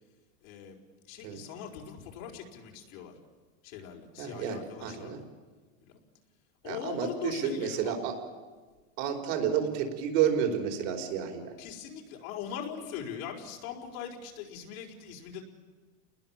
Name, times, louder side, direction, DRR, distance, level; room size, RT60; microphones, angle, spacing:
voice 1, 0.4-0.8 1.1-3.1 3.6-5.2 5.8-5.9 6.6-7.9 11.6-15.4, left 8 dB, 80° left, 0 dB, 4.6 m, -41 dB
voice 2, 4.2-5.2 6.6-8.1 9.0-11.5, right 8 dB, 65° right, 4 dB, 4.8 m, -30 dB
30.0 x 20.5 x 7.4 m, 1.4 s
supercardioid pair, 145°, 41 cm